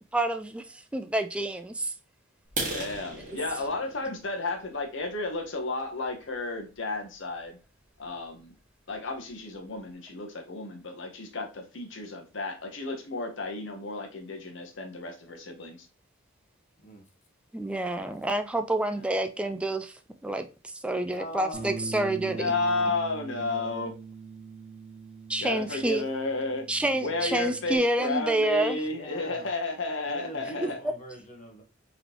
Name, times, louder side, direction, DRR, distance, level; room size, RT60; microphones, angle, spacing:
voice 1, 0.1-1.9 17.5-19.9 20.2-22.5 25.3-26.1 26.7-28.8 30.4-30.9, right 1 dB, 5° right, 7 dB, 0.3 m, -28 dB
sound 1, 2.4-6.2 6.7-6.9 7.4-7.5 7.9-8.1 8.4-8.5 8.9-9.0 9.3-9.8, right 2 dB, 40° right, 1.6 m, -38 dB
voice 2, 2.7-7.6 8.0-8.5 8.9-15.9 22.2-23.9 25.4-26.7 27.0-30.8, left 3 dB, 65° left, 4 dB, 1.0 m, -32 dB
voice 3, 21.1-22.8 23.3-23.9 25.4-25.5 28.8-29.5 30.1-31.6, equal, 40° left, 2 dB, 1.2 m, -44 dB
Bass guitar, 21.5-27.8, right 4 dB, 55° right, 1.3 m, -42 dB
4.0 x 3.6 x 2.9 m, 0.31 s
head